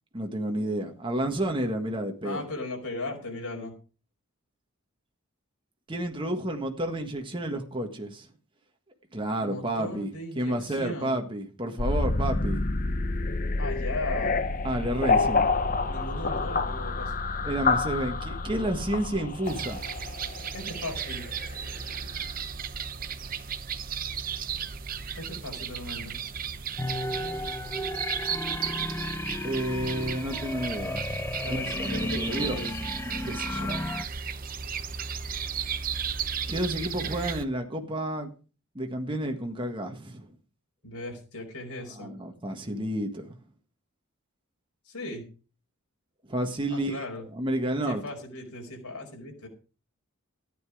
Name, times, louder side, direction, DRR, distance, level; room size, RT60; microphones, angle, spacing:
voice 1, 0.1-2.5 5.9-8.3 9.1-12.6 14.6-15.5 17.4-19.8 29.4-31.1 31.5-31.6 32.2-32.6 33.2-33.8 36.5-38.3 38.7-40.3 42.0-43.4 46.3-47.0 47.3-48.0, right 1 dB, 20° right, 1.6 m, -30 dB
voice 2, 2.2-3.7 9.4-11.2 13.6-14.4 15.9-17.1 20.5-21.3 25.2-26.2 31.4-32.8 33.5-33.9 40.8-42.1 44.8-45.2 46.7-47.2 47.9-49.5, left 2 dB, 90° left, 4.9 m, -37 dB
sound 1, 11.8-21.8, left 3 dB, 40° left, 0.8 m, -28 dB
sound 2, 19.4-37.4, right 7 dB, 40° right, 0.8 m, -35 dB
sound 3, 26.8-34.0, left 1 dB, 10° left, 0.8 m, -33 dB
13.5 x 9.9 x 4.9 m
head